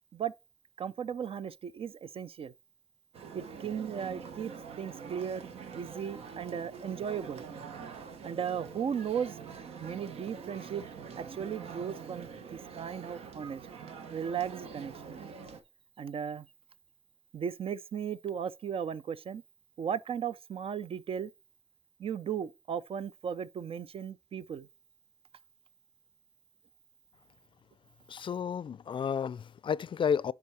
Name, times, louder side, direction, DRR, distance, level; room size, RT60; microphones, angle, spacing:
voice 1, 0.8-2.5 3.3-4.5 4.8-5.5 5.7-7.5 8.2-9.4 9.8-10.9 11.2-13.6 14.1-15.2 16.0-16.5 17.3-19.4 19.8-21.3 22.0-24.7, right 8 dB, 65° right, 0.5 m, -36 dB
sound 1, 3.1-15.6, right 6 dB, 90° right, 0.8 m, -45 dB
voice 2, 28.1-30.3, left 7 dB, 55° left, 0.4 m, -31 dB
9.4 x 3.5 x 4.1 m
cardioid pair, 55°, 10 cm